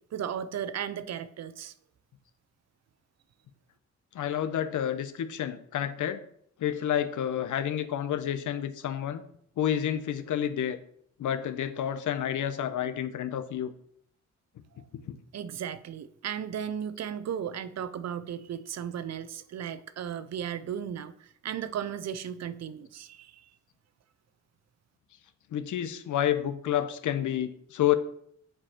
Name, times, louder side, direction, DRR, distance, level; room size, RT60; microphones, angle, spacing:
voice 1, 0.1-1.7 15.3-23.5, right 9 dB, 60° right, 14 dB, 0.5 m, -35 dB
voice 2, 4.1-6.2 6.6-9.2 9.6-10.8 11.2-13.7 15.1-15.2 25.5-28.0, left 10 dB, 85° left, 11 dB, 0.7 m, -29 dB
7.6 x 4.7 x 4.3 m, 0.67 s
wide cardioid pair, 135°, 30 cm